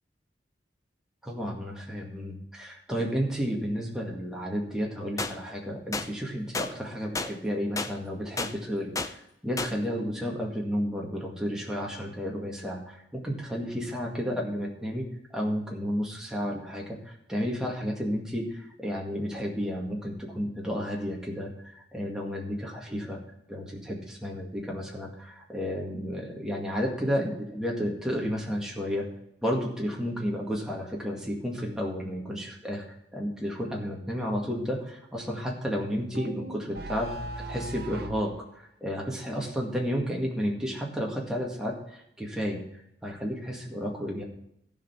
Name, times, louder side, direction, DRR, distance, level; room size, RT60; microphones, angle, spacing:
voice 1, 1.2-15.0 15.3-23.2 23.5-29.0 29.4-37.1 37.5-44.2, equal, 5° right, -2 dB, 2.0 m, -32 dB
sound 1, 5.2-5.3 5.9-6.1 6.5-6.7 7.1-7.3 7.8-7.9 8.4-8.5 8.9-9.1 9.6-9.7, left 3 dB, 20° left, 0.5 m, -30 dB
sound 2, 36.1-38.3, right 1 dB, 55° right, 0.8 m, -38 dB
15.0 x 5.2 x 6.0 m, 0.77 s
head